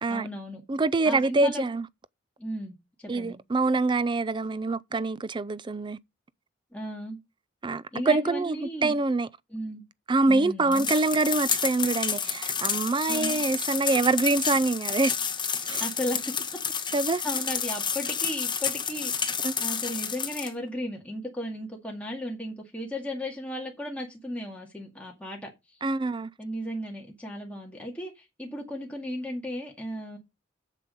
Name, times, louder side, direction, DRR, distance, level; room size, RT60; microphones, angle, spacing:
voice 1, 0.1-0.6 1.0-1.7 2.4-3.4 6.7-7.2 7.9-8.9 9.5-9.8 10.3-10.9 13.1-13.4 15.8-16.2 17.2-25.8 26.4-30.2, left 1 dB, 5° left, 2.0 m, -35 dB
voice 2, 0.7-1.9 3.1-6.0 7.6-9.3 10.1-15.1 15.7-15.8 16.9-17.2 19.4-19.5 25.8-26.3, right 3 dB, 25° right, 0.4 m, -25 dB
sound 1, 10.7-20.5, left 7 dB, 25° left, 1.3 m, -30 dB
7.5 x 7.4 x 5.3 m
head